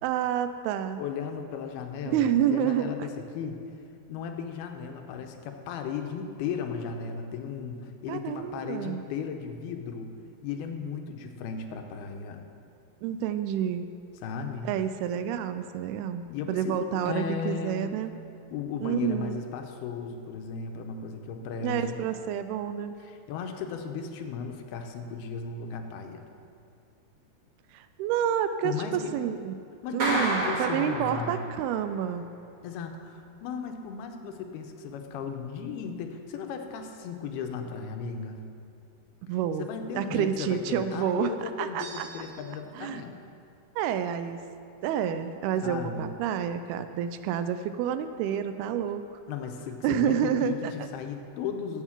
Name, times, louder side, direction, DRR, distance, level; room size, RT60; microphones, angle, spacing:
voice 1, 0.0-1.0 2.0-3.1 8.1-9.0 13.0-13.9 14.6-18.1 18.8-19.5 21.6-23.0 27.7-29.6 29.9-32.3 39.3-39.7 40.0-42.1 42.8-43.0 43.8-44.4 44.8-49.2 49.8-50.7, right 9 dB, 85° right, 10 dB, 2.4 m, -29 dB
voice 2, 1.0-3.1 3.3-3.6 4.1-10.1 10.4-12.4 14.2-14.7 16.3-17.9 18.5-22.0 23.0-26.2 28.6-29.2 29.8-31.5 32.6-38.4 39.6-43.2 45.6-46.1 49.3-51.8, left 6 dB, 80° left, 5 dB, 2.7 m, -35 dB
Clapping, 30.0-31.7, right 1 dB, 45° right, 3.3 m, -30 dB
sound 1, 41.8-42.8, right 4 dB, 60° right, 3.1 m, -46 dB
11.0 x 8.0 x 7.3 m, 2.5 s
omnidirectional pair, 4.6 m